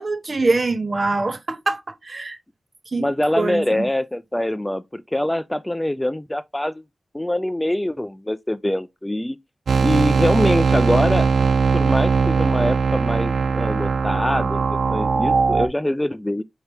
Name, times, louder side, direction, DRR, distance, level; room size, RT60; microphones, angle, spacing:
voice 1, 0.0-2.4 2.9-3.1 3.3-3.9, right 3 dB, 50° right, 0.9 m, -24 dB
voice 2, 3.0-6.8 7.1-9.4 9.8-11.3 11.7-16.4, left 1 dB, 15° left, 0.4 m, -24 dB
sound 1, 9.7-15.7, right 5 dB, 85° right, 0.4 m, -19 dB
5.7 x 2.8 x 3.4 m
cardioid pair, 60°, 0 cm